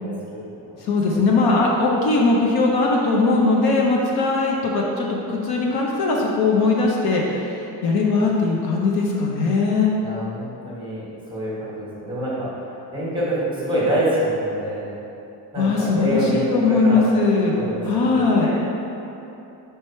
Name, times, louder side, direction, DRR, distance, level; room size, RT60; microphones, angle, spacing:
voice 1, 0.0-0.4 0.6-0.7 1.0-1.2 1.5-1.6 10.0-12.5 12.9-14.9 15.5-17.2 17.5-18.5, right 1 dB, 10° right, -7 dB, 1.3 m, -26 dB
voice 2, 0.8-9.9 15.5-18.5, left 3 dB, 60° left, -1 dB, 0.7 m, -20 dB
4.7 x 4.6 x 4.3 m, 2.9 s
cardioid pair, 180°, 42 cm